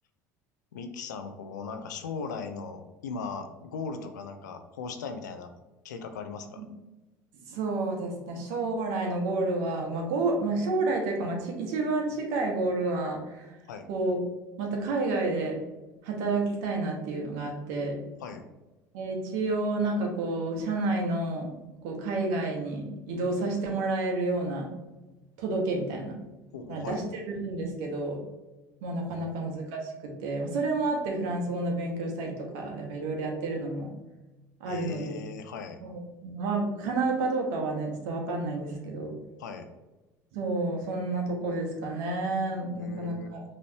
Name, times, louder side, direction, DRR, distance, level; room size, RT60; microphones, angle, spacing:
voice 1, 0.7-5.5 5.8-6.6 13.7-13.9 18.2-18.4 26.5-27.0 29.1-29.4 34.7-35.8 39.4-39.7 42.7-43.3, left 5 dB, 90° left, 7 dB, 0.5 m, -38 dB
voice 2, 7.5-13.4 13.9-14.2 14.6-15.6 16.0-18.0 18.9-21.5 21.8-24.7 25.4-26.1 26.7-28.2 28.8-33.9 34.6-35.1 35.8-39.1 40.3-43.4, right 2 dB, 70° right, 1 dB, 1.1 m, -30 dB
5.4 x 3.1 x 2.8 m, 1.1 s
hypercardioid pair, 75°, 9 cm